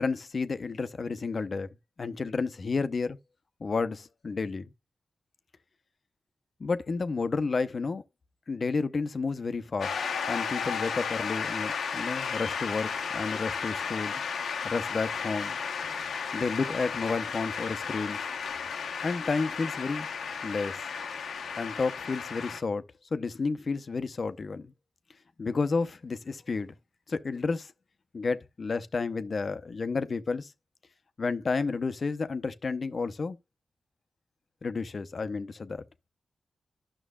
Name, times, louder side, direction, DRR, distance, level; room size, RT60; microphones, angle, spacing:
voice 1, 0.0-3.2 3.6-4.7 6.6-8.0 8.5-9.9 10.3-14.2 14.6-15.6 16.3-18.2 19.0-20.1 20.4-20.8 21.6-22.8 23.1-24.7 25.4-26.7 27.1-27.7 28.1-30.5 31.2-33.4 34.6-35.8, left 4 dB, 55° left, 0.7 m, -31 dB
Shout / Cheering / Applause, 9.8-22.6, left 6 dB, 85° left, 0.9 m, -34 dB
11.0 x 6.0 x 2.3 m
cardioid pair, 45°, 0 cm